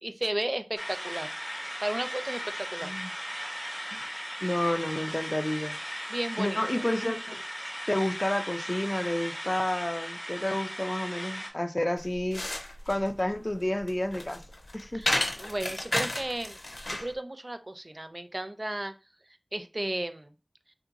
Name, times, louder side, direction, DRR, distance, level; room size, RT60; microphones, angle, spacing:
voice 1, 0.0-1.3 1.8-2.9 6.1-6.6 14.9-16.6 17.0-18.9 19.5-20.3, right 1 dB, 40° right, 0.4 m, -34 dB
sound 1, 0.8-11.5, equal, 10° right, 0.9 m, -37 dB
voice 2, 4.4-5.8 6.4-7.4 7.9-12.4 12.9-14.4 14.7-15.1, left 1 dB, 35° left, 0.4 m, -30 dB
sound 2, 12.0-17.1, left 1 dB, 80° left, 0.6 m, -32 dB
3.4 x 2.9 x 2.4 m
wide cardioid pair, 45°, 0 cm